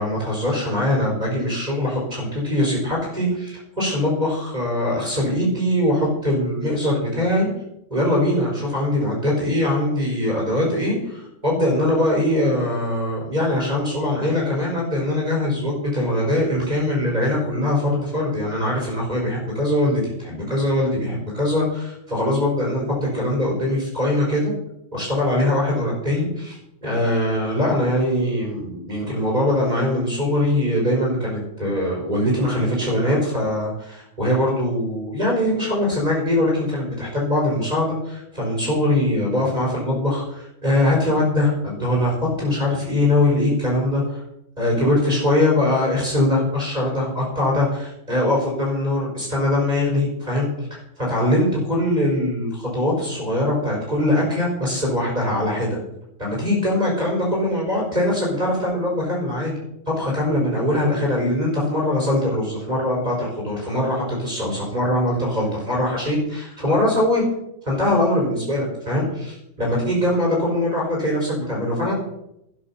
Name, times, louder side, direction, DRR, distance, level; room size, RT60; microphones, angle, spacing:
voice 1, 0.0-7.5 7.9-24.5 24.9-44.2 44.6-55.8 56.2-59.5 59.9-67.2 67.6-71.9, left 1 dB, 30° right, -3 dB, 5.0 m, -22 dB
13.0 x 10.0 x 5.8 m, 0.81 s
omnidirectional pair, 1.4 m